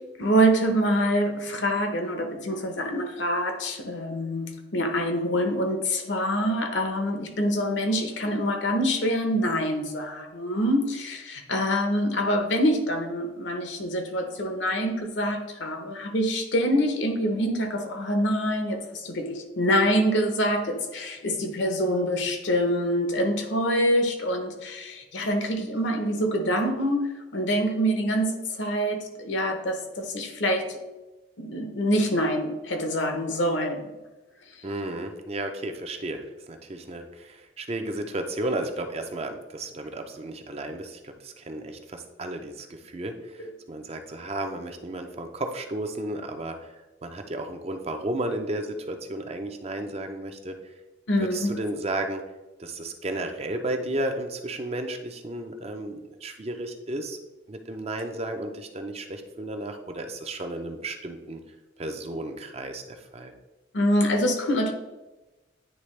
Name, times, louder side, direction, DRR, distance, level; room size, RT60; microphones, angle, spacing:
voice 1, 0.2-30.7 31.4-33.9 51.1-51.5 63.7-64.7, equal, 70° left, 5 dB, 0.9 m, -25 dB
voice 2, 34.6-46.8 47.0-50.6 51.2-52.2 52.6-57.2 57.5-61.4 61.8-63.3, right 1 dB, 35° right, 5 dB, 0.5 m, -33 dB
9.5 x 3.3 x 3.2 m, 1.1 s
head